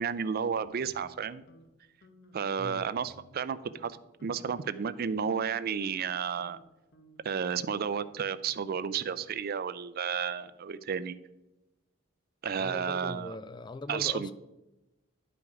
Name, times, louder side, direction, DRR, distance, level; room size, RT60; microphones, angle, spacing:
voice 1, 0.0-1.4 2.3-6.6 7.2-11.2 12.4-13.4 13.9-14.3, right 7 dB, 50° right, 0.4 m, -32 dB
sound 1, 0.7-1.7 2.0-2.4 2.8-3.4 3.7-3.9 4.2-4.6 5.0-9.4, left 1 dB, 55° left, 1.2 m, -59 dB
voice 2, 12.6-14.3, left 2 dB, 20° left, 0.3 m, -40 dB
10.5 x 5.1 x 4.7 m
head